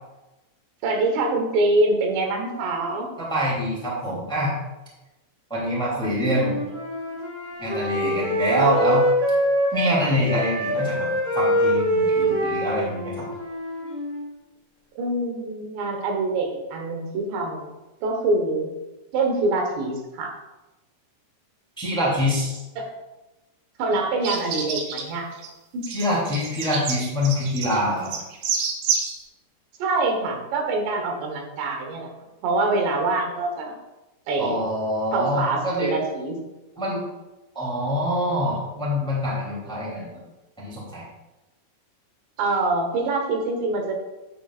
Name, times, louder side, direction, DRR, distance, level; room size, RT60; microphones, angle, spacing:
voice 1, 0.8-3.1 15.0-17.7 18.0-18.7 19.1-20.3 22.8-22.9 23.8-25.3 25.7-25.8 29.8-32.1 32.4-33.7 34.3-34.6 35.1-36.4 42.4-43.9, right 2 dB, 90° right, 2 dB, 3.6 m, -25 dB
voice 2, 3.2-4.5 5.5-6.6 7.6-9.0 9.7-11.1 11.3-13.1 21.8-22.6 25.9-28.1 34.4-35.9 36.8-37.0 37.5-40.1 40.6-41.0, equal, ahead, -5 dB, 2.1 m, -25 dB
Wind instrument woodwind instrument, 6.2-10.0 10.2-14.4, equal, 25° right, 1.0 m, -24 dB
sound 1, 24.2-25.0 25.3-25.5 25.8-29.1, right 6 dB, 70° right, 2.8 m, -28 dB
9.6 x 8.7 x 2.5 m, 1.0 s
omnidirectional pair, 4.8 m